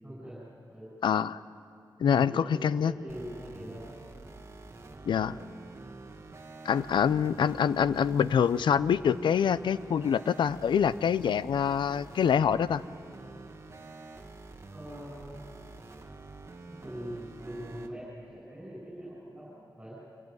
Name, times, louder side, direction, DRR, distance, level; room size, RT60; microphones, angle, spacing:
voice 1, 0.0-0.4 0.7-0.9 2.0-4.0 4.9-5.4 14.7-15.4 16.7-20.0, equal, 15° right, -7 dB, 7.5 m, -43 dB
voice 2, 1.0-1.4 2.0-2.9 5.1-5.3 6.6-12.8, left 7 dB, 90° left, 17 dB, 0.5 m, -25 dB
sound 1, 3.1-17.9, right 3 dB, 35° right, 1.4 m, -48 dB
26.0 x 17.0 x 9.6 m, 2.6 s
wide cardioid pair, 115°, 8 cm